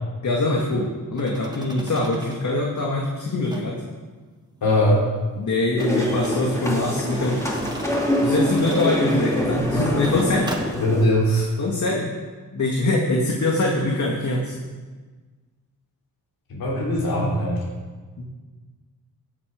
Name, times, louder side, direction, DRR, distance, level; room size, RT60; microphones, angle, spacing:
voice 1, 0.2-3.7 5.4-7.4 8.2-10.5 11.6-12.1 12.5-14.6 18.2-18.3, left 2 dB, 55° left, -1 dB, 2.1 m, -23 dB
sound 1, 1.1-2.4 3.4-3.7 5.8-6.4 6.9-9.5 9.9-10.7, right 1 dB, 10° right, 1.9 m, -37 dB
voice 2, 4.6-5.0 10.8-11.5 16.5-17.6, left 1 dB, 80° left, -5 dB, 3.8 m, -20 dB
sound 2, 5.8-11.0, equal, 10° left, 2.8 m, -25 dB
16.5 x 8.0 x 5.2 m, 1.4 s
cardioid pair, 90°, 36 cm